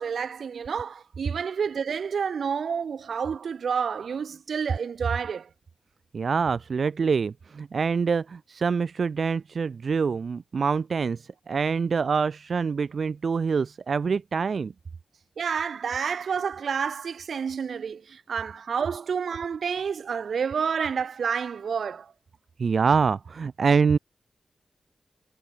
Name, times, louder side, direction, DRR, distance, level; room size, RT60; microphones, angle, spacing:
voice 1, 0.0-5.5 15.4-22.1, right 6 dB, 80° right, 4.5 m, -29 dB
voice 2, 6.1-14.7 22.6-24.0, right 5 dB, 65° right, 1.0 m, -25 dB
wide cardioid pair, 95°, 0 cm